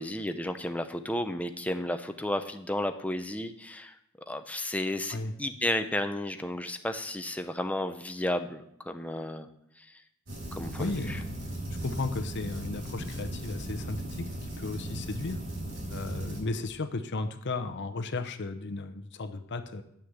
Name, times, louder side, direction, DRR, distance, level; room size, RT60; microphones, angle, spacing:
voice 1, 0.0-3.9 4.3-9.5 9.8-10.0 10.5-11.2, left 1 dB, 5° left, 8 dB, 0.6 m, -33 dB
sound 1, 10.3-16.4, right 1 dB, 75° right, 4.7 m, -37 dB
voice 2, 10.8-11.3 11.7-15.4 15.9-19.8, left 3 dB, 55° left, 9 dB, 0.7 m, -35 dB
9.9 x 6.3 x 7.1 m, 0.75 s
head